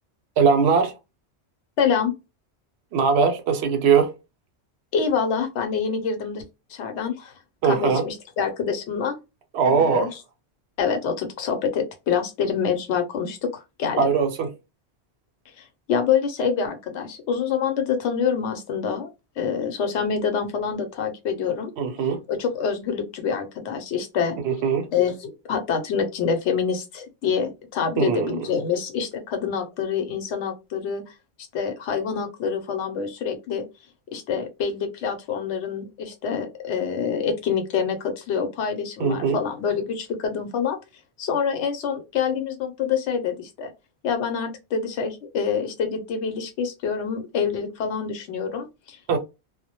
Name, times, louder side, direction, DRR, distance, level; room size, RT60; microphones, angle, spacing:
voice 1, 0.4-0.9 2.9-4.1 7.6-8.0 9.5-10.1 14.0-14.5 21.8-22.2 24.4-24.9 28.0-28.4 39.0-39.4 49.1-49.2, right 6 dB, 70° right, 0.8 m, -20 dB
voice 2, 1.8-2.1 4.9-6.4 6.7-7.3 7.7-9.2 9.6-10.1 10.8-14.0 15.6-19.1 19.4-21.7 22.3-24.4 24.9-31.1 31.5-33.6 34.1-40.8 41.2-43.7 44.0-49.0, left 6 dB, 90° left, 0.9 m, -26 dB
2.2 x 2.0 x 2.8 m
omnidirectional pair, 1.1 m